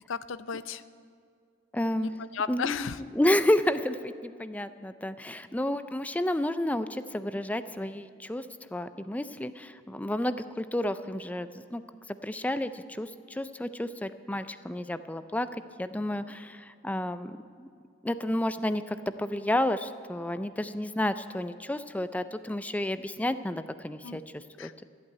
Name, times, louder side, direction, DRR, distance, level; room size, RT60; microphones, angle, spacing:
voice 1, 0.1-0.8 1.9-3.0 24.0-24.2 24.6-24.8, left 6 dB, 75° left, 14 dB, 0.5 m, -34 dB
voice 2, 1.7-2.2 2.5-8.5 8.7-11.8 12.1-15.5 15.8-17.7 18.0-24.7, left 1 dB, 10° left, 12 dB, 0.4 m, -31 dB
14.0 x 8.6 x 9.3 m, 2.3 s
head